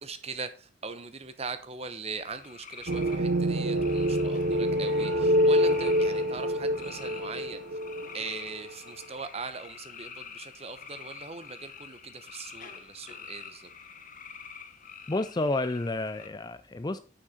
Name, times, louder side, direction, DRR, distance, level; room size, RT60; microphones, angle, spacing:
voice 1, 0.0-7.6 8.1-13.7, right 4 dB, 30° right, 10 dB, 0.9 m, -40 dB
sound 1, 2.2-16.3, left 6 dB, 40° left, 1.1 m, -47 dB
sound 2, 2.9-8.7, equal, 65° right, 0.9 m, -26 dB
voice 2, 15.1-17.0, left 2 dB, 20° left, 11 dB, 0.4 m, -30 dB
9.9 x 6.3 x 4.3 m, 0.38 s
head